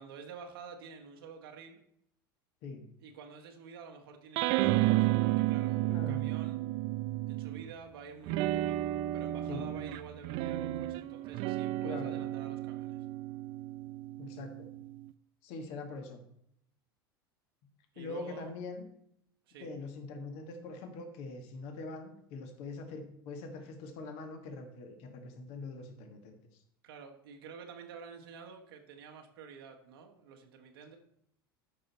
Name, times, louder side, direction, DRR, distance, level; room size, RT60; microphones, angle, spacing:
voice 1, 0.0-1.8 3.0-6.6 7.3-8.7 9.1-13.0 17.9-18.6 19.5-19.7 26.8-31.0, right 5 dB, 70° right, 2 dB, 1.4 m, -49 dB
sound 1, 4.4-7.7 8.3-15.0, right 16 dB, 50° right, 0.5 m, -32 dB
voice 2, 5.8-6.2 9.5-9.7 11.8-12.2 14.2-14.7 15.4-16.2 18.0-18.9 19.6-26.6, left 3 dB, 55° left, 6 dB, 1.6 m, -43 dB
12.5 x 5.5 x 4.2 m, 0.74 s
hypercardioid pair, 80°, 13 cm